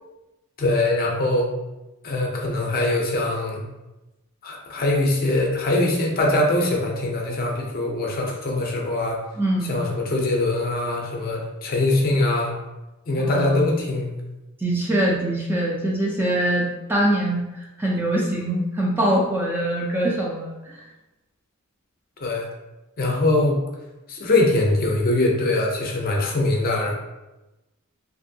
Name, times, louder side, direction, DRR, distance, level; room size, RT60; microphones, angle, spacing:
voice 1, 0.6-1.5 2.0-3.6 4.4-9.2 9.6-12.5 13.1-14.1 22.2-22.5 23.0-23.6 24.1-26.9, left 2 dB, 45° left, -1 dB, 0.5 m, -22 dB
voice 2, 9.4-9.7 13.1-13.6 14.6-17.4 17.8-20.6, right 1 dB, 10° right, -4 dB, 0.4 m, -23 dB
3.0 x 2.6 x 2.6 m, 1.0 s
head